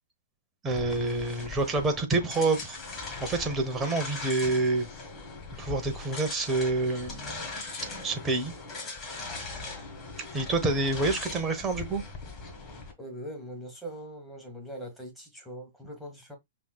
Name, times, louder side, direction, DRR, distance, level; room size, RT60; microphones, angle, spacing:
voice 1, 0.6-2.8 3.2-4.9 5.6-7.6 8.0-8.5 10.3-12.0, right 3 dB, 15° right, 0.9 m, -27 dB
sound 1, 0.7-12.9, left 3 dB, 20° left, 1.5 m, -40 dB
voice 2, 13.0-16.4, equal, ahead, 1.3 m, -41 dB
5.7 x 2.8 x 2.3 m
hypercardioid pair, 150°, 0 cm